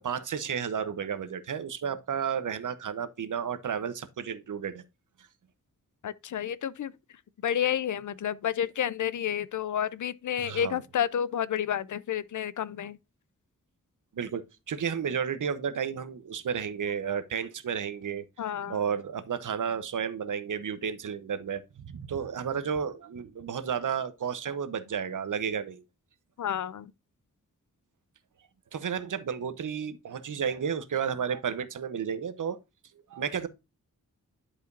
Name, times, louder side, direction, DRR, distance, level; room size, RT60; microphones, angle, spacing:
voice 1, 0.0-4.8 10.4-10.8 14.1-18.2 18.7-25.8 28.7-32.6 33.1-33.5, right 7 dB, 75° right, 0.9 m, -32 dB
voice 2, 6.0-6.9 7.4-13.0 18.4-18.8 26.4-26.9, left 9 dB, 70° left, 0.5 m, -30 dB
11.0 x 5.0 x 2.6 m
wide cardioid pair, 135°, 32 cm